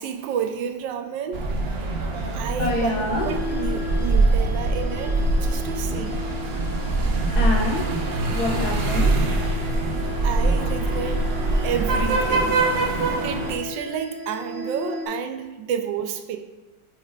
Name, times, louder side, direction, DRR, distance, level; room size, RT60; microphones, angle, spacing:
voice 1, 0.0-1.5 2.3-6.2 10.2-11.3 11.6-16.4, right 7 dB, 85° right, 7 dB, 1.3 m, -30 dB
sound 1, 1.3-13.5, right 2 dB, 70° right, 0.6 m, -23 dB
voice 2, 2.6-3.3 7.4-7.9 8.2-9.1, left 2 dB, 60° left, -3 dB, 1.8 m, -25 dB
sound 2, 3.1-15.1, left 2 dB, 55° right, 1.4 m, -36 dB
8.7 x 4.5 x 2.4 m, 1.3 s
omnidirectional pair, 1.9 m